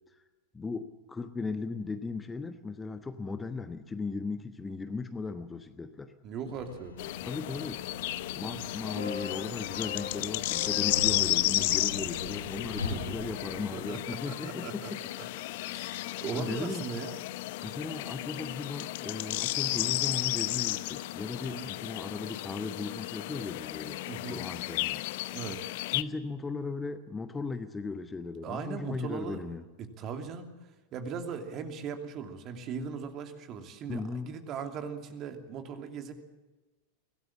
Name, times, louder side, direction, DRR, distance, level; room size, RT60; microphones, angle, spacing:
voice 1, 0.5-6.1 7.2-7.8 8.4-15.7 16.3-16.9 17.6-24.0 24.3-25.0 25.9-29.6 33.9-34.3, left 4 dB, 15° left, 9 dB, 1.2 m, -37 dB
voice 2, 6.2-6.9 8.4-9.0 12.8-14.9 15.7-17.2 21.5-21.7 24.1-24.4 25.3-25.6 28.4-29.4 29.8-30.5 30.9-36.1, right 6 dB, 35° right, 6 dB, 2.8 m, -39 dB
sound 1, 6.5-14.2, left 3 dB, 75° left, 4.0 m, -41 dB
sound 2, 7.0-26.0, left 17 dB, 50° left, 0.8 m, -33 dB
24.5 x 18.0 x 7.4 m, 1.2 s
figure-of-eight pair, 90°, 0 cm